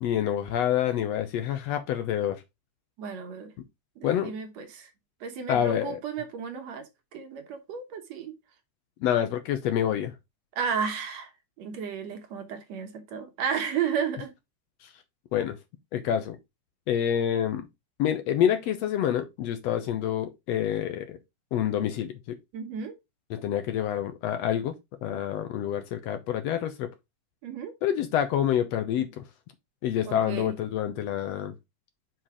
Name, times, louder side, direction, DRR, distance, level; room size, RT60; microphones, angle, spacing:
voice 1, 0.0-2.4 4.0-4.3 5.5-6.0 9.0-10.1 15.3-15.6 15.9-16.4 16.9-17.7 18.0-21.2 21.5-22.4 23.3-24.7 25.0-26.9 27.8-29.2 29.8-31.6, left 10 dB, 70° left, 1.8 m, -27 dB
voice 2, 3.0-3.5 4.0-4.9 5.2-8.4 10.6-11.3 11.6-14.3 22.5-23.0 27.4-27.7 30.1-30.6, right 7 dB, 65° right, 2.3 m, -33 dB
5.9 x 5.1 x 4.8 m
omnidirectional pair, 3.4 m